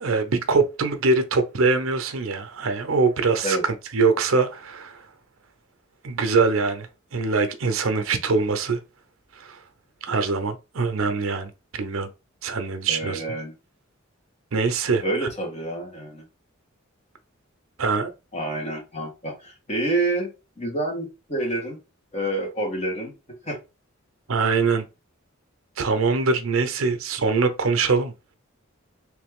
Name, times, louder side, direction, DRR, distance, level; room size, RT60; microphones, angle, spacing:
voice 1, 0.0-3.6 3.9-5.0 6.0-8.8 9.4-9.6 10.0-12.1 12.4-13.2 14.5-15.0 17.8-18.1 24.3-24.8 25.8-28.1, right 4 dB, 75° right, 0.7 m, -23 dB
voice 2, 12.9-13.5 15.0-16.2 18.3-21.8 22.1-23.1 23.4-23.6, right 2 dB, 30° left, 1.5 m, -28 dB
3.4 x 3.1 x 3.6 m
head